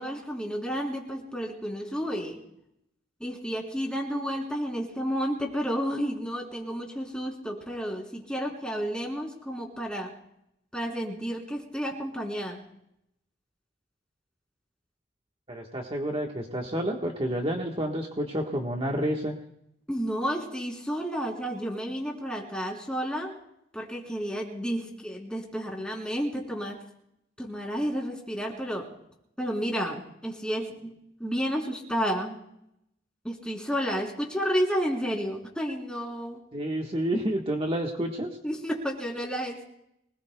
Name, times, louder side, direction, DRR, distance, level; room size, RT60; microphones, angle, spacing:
voice 1, 0.0-2.4 3.2-10.1 10.7-12.6 19.9-23.3 23.7-26.8 27.4-28.9 29.4-31.0 31.2-32.4 33.2-36.4 38.4-39.7, equal, 5° left, -1 dB, 3.5 m, -31 dB
voice 2, 15.5-19.3 36.5-38.3, right 1 dB, 30° right, 0 dB, 1.4 m, -29 dB
25.5 x 20.0 x 2.3 m, 0.78 s
head